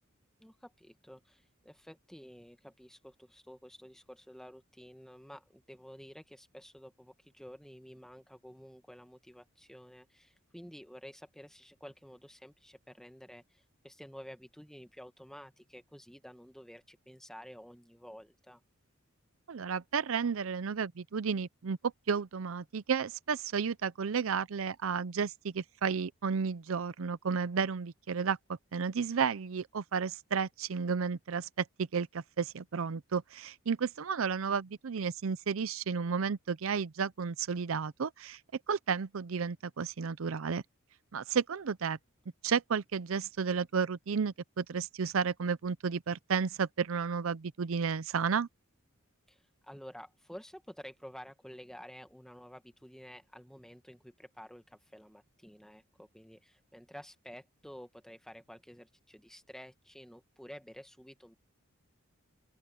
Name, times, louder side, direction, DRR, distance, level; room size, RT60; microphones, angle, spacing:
voice 1, 0.4-18.6 49.3-61.3, equal, ahead, 1.4 m, -51 dB
voice 2, 19.5-21.8 22.1-28.4 28.7-31.6 31.9-38.4 38.7-40.6 41.1-42.0 42.4-48.5, right 6 dB, 65° right, 0.5 m, -32 dB
open air
head